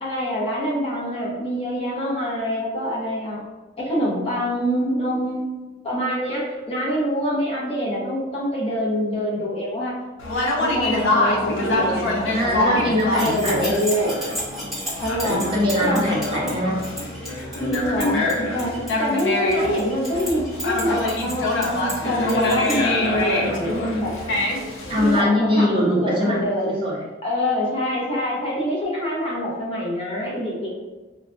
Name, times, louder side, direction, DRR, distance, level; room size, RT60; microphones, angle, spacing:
voice 1, 0.0-3.5 3.8-10.0 10.6-14.1 15.0-15.5 15.8-16.1 17.6-24.1 25.0-26.9 27.2-30.7, equal, 30° left, -6 dB, 0.8 m, -25 dB
Conversation, 10.2-25.2, left 2 dB, 70° left, 0.6 m, -25 dB
voice 2, 12.3-13.7 15.2-16.8 24.9-27.0, left 1 dB, 25° right, -5 dB, 0.8 m, -22 dB
sound 1, 13.0-22.8, equal, ahead, 1.1 m, -34 dB
4.8 x 2.1 x 2.5 m, 1.2 s
head